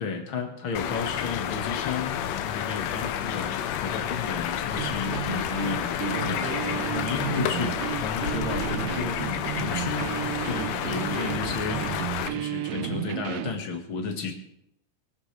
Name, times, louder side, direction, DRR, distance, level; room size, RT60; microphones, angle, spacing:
voice 1, 0.0-14.3, left 5 dB, 45° left, 3 dB, 1.7 m, -33 dB
sound 1, 0.8-12.3, left 10 dB, 80° left, 2.8 m, -30 dB
sound 2, 4.7-13.6, right 13 dB, 85° right, 1.8 m, -33 dB
23.5 x 14.0 x 3.3 m, 0.76 s
omnidirectional pair, 4.7 m